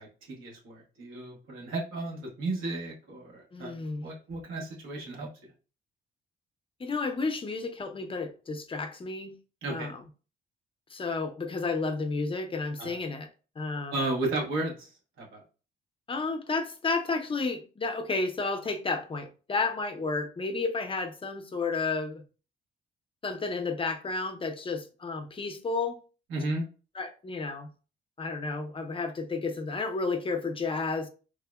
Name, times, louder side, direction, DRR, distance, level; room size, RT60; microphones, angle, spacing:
voice 1, 0.0-3.8 4.0-5.5 9.6-9.9 12.8-13.0 13.9-14.9 15.2-15.4 26.3-26.6, right 2 dB, 85° right, 1.0 m, -34 dB
voice 2, 3.5-4.0 6.8-9.3 9.7-10.0 10.9-13.3 13.6-13.9 16.1-22.2 23.2-26.0 27.0-27.7 28.2-31.1, left 3 dB, 25° left, 0.5 m, -32 dB
3.5 x 2.0 x 2.2 m
cardioid pair, 90°, 20 cm